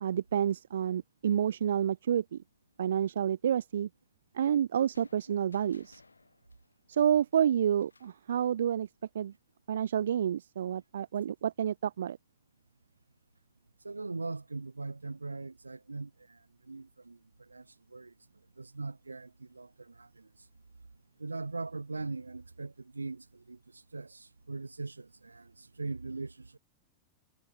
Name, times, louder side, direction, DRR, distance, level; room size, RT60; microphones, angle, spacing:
voice 1, 0.0-2.4 2.8-3.9 4.3-6.0 6.9-8.9 9.1-9.3 9.7-12.2, right 9 dB, 65° right, 0.3 m, -29 dB
sound 1, 4.9-8.3, left 3 dB, 80° left, 7.0 m, -62 dB
voice 2, 13.8-18.1 18.6-20.3 21.2-26.6, right 3 dB, 80° right, 1.7 m, -41 dB
figure-of-eight pair, 90°, 0 cm